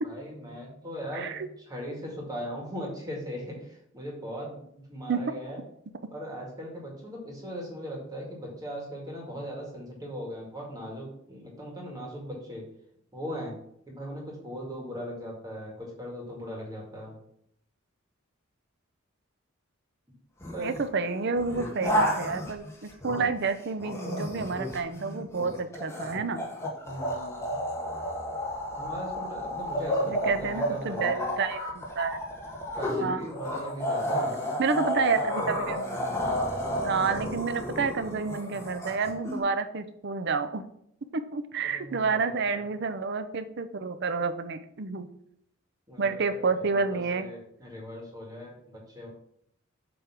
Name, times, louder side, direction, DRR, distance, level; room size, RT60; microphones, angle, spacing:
voice 1, 0.0-5.6 6.1-12.6 13.1-13.6 13.9-17.2 20.5-20.9 26.8-27.6 28.7-31.3 32.8-34.4 35.0-35.2 37.0-37.2 41.6-42.6 45.9-49.1, equal, 20° right, -2 dB, 2.0 m, -39 dB
voice 2, 1.1-1.5 5.1-5.2 20.6-26.5 30.1-32.2 33.0-33.2 34.6-36.0 36.8-40.6 41.1-45.1 46.0-47.3, right 4 dB, 55° right, 10 dB, 0.6 m, -29 dB
sound 1, 20.4-20.8 21.3-23.4 23.8-39.4, equal, 15° left, 1.6 m, -31 dB
7.9 x 3.5 x 6.0 m, 0.72 s
head